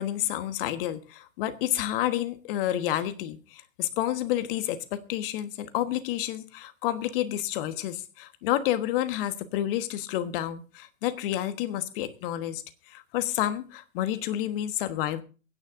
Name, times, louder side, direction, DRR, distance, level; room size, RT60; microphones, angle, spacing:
voice 1, 0.0-15.2, left 12 dB, 45° left, 10 dB, 1.4 m, -30 dB
23.0 x 10.0 x 2.6 m, 0.36 s
hypercardioid pair, 115°, 40 cm